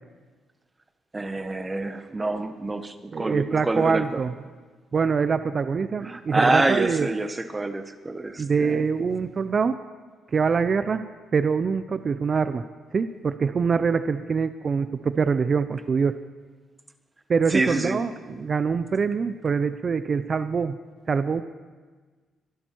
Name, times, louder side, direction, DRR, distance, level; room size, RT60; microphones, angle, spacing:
voice 1, 1.1-4.2 6.0-8.8 17.5-18.0, right 2 dB, 20° right, 9 dB, 1.3 m, -26 dB
voice 2, 3.1-4.3 4.9-7.1 8.4-9.8 10.3-11.0 11.3-12.6 12.9-16.2 17.3-20.8 21.1-21.4, right 5 dB, 40° right, 11 dB, 0.6 m, -24 dB
24.0 x 11.5 x 4.6 m, 1.4 s
cardioid pair, 90°, 0 cm